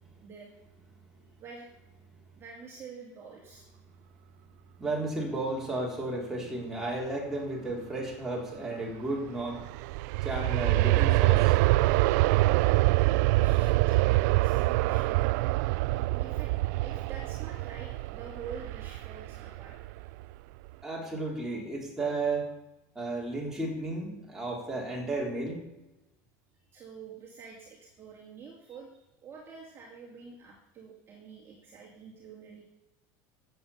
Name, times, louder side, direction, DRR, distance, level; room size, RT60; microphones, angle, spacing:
voice 1, 0.2-0.5 1.4-1.7 2.4-3.6 12.5-15.2 16.2-16.5 16.8-19.7 26.6-28.9 29.2-32.6, right 5 dB, 25° right, -2 dB, 2.4 m, -47 dB
voice 2, 4.8-9.6 10.2-11.6 20.8-22.5 23.0-25.6, right 2 dB, 5° right, -3 dB, 3.6 m, -33 dB
Aircraft, 9.4-20.2 20.7-20.8, right 20 dB, 70° right, 0.4 m, -25 dB
13.5 x 8.3 x 7.0 m, 0.94 s
cardioid pair, 160°, 10 cm